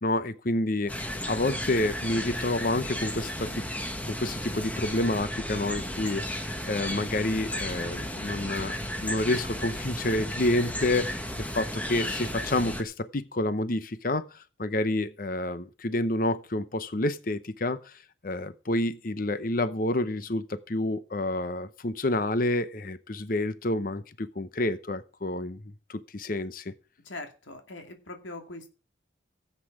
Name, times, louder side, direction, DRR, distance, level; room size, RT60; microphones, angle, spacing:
voice 1, 0.0-3.6 4.0-8.7 9.0-25.6 25.9-26.7, left 1 dB, 45° left, 0.8 m, -29 dB
sound 1, 0.9-12.8, left 1 dB, 10° left, 1.4 m, -34 dB
voice 2, 27.0-28.7, left 2 dB, 85° left, 2.5 m, -41 dB
17.0 x 8.4 x 4.8 m
head